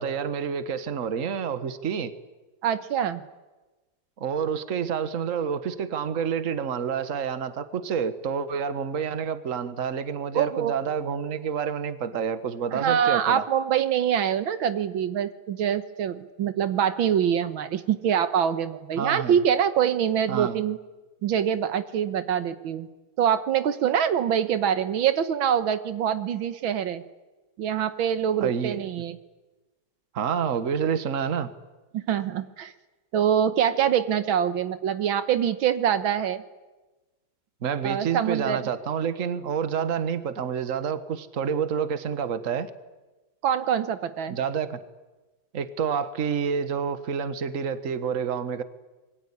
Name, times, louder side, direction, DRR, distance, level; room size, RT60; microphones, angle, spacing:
voice 1, 0.0-2.1 4.2-13.4 19.0-19.4 20.3-20.6 28.4-28.8 30.1-31.5 37.6-42.7 44.3-44.8 45.5-48.6, right 7 dB, 45° right, 12 dB, 1.6 m, -28 dB
voice 2, 2.6-3.2 10.3-10.7 12.7-20.8 21.2-22.9 23.2-27.0 27.6-29.2 31.9-32.7 33.1-36.4 37.8-38.7 43.4-44.4, right 9 dB, 80° right, 12 dB, 1.9 m, -24 dB
25.5 x 22.5 x 9.9 m, 1.2 s
omnidirectional pair, 2.2 m